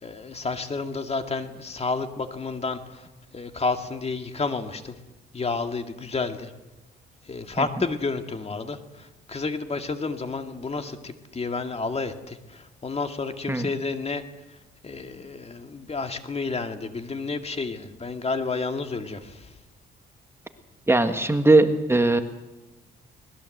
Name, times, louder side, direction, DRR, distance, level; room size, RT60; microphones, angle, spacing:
voice 1, 0.0-3.1 3.3-5.0 5.3-6.5 7.2-14.2 14.8-19.5, left 4 dB, 30° left, 7 dB, 2.2 m, -30 dB
voice 2, 20.9-22.2, right 2 dB, 10° right, 7 dB, 1.6 m, -19 dB
24.5 x 20.0 x 7.9 m, 1.0 s
cardioid pair, 90°, 20 cm